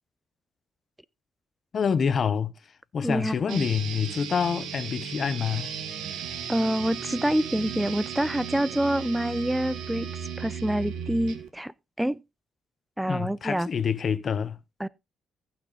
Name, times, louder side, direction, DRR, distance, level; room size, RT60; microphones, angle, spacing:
voice 1, 1.7-2.5 2.9-5.7 13.1-14.6, left 7 dB, 50° left, 0.9 m, -27 dB
voice 2, 3.0-3.6 6.5-10.1 10.4-12.2 13.0-13.7 14.8-14.9, right 1 dB, 5° right, 0.5 m, -27 dB
sound 1, 3.5-11.5, right 8 dB, 80° right, 1.9 m, -36 dB
Wind instrument woodwind instrument, 5.9-10.5, right 6 dB, 60° right, 1.4 m, -49 dB
15.5 x 6.1 x 4.1 m
cardioid pair, 90°, 0 cm